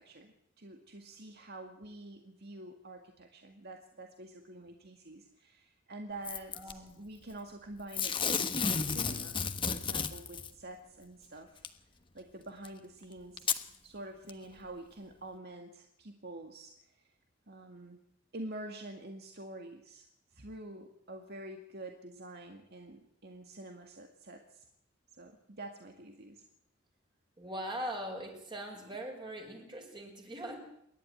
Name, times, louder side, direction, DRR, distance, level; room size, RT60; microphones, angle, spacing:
voice 1, 0.0-11.6 12.1-13.5 13.8-17.1 17.5-18.0 18.3-20.0 20.3-24.7 25.2-26.4, right 1 dB, 55° right, 4 dB, 2.1 m, -47 dB
Packing tape duct tape / Tearing, 6.2-6.7 7.9-10.5 11.6-11.7 12.6-12.7 13.4-13.6 14.3-14.4, left 6 dB, 25° left, 1.3 m, -32 dB
voice 2, 6.5-7.0 27.4-30.6, equal, 25° right, 2 dB, 5.5 m, -41 dB
28.5 x 12.0 x 9.2 m, 0.74 s
head